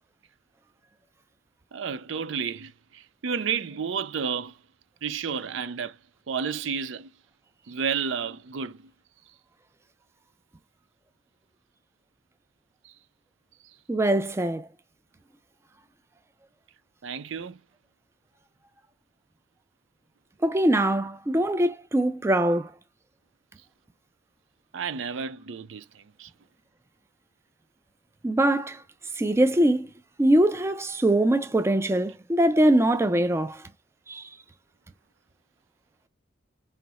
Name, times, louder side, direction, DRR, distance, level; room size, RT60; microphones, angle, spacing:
voice 1, 1.7-4.5 5.0-6.0 6.3-7.1 7.7-8.9 17.0-17.6 24.7-26.3, right 6 dB, 70° right, 0.5 m, -31 dB
voice 2, 13.9-14.7 20.4-22.7 28.2-28.8 29.2-29.9 30.2-33.6 34.1-34.3, right 1 dB, 15° right, 0.3 m, -22 dB
4.9 x 3.0 x 2.9 m
head